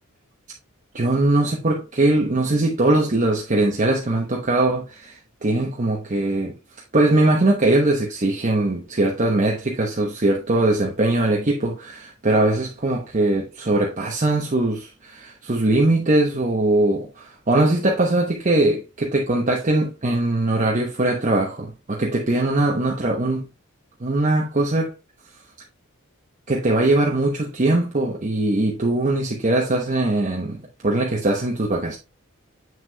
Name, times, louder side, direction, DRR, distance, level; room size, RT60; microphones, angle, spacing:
voice 1, 0.9-6.5 6.9-23.5 24.0-24.9 26.5-32.0, right 2 dB, 35° right, 0.9 m, -21 dB
7.4 x 6.2 x 2.3 m
head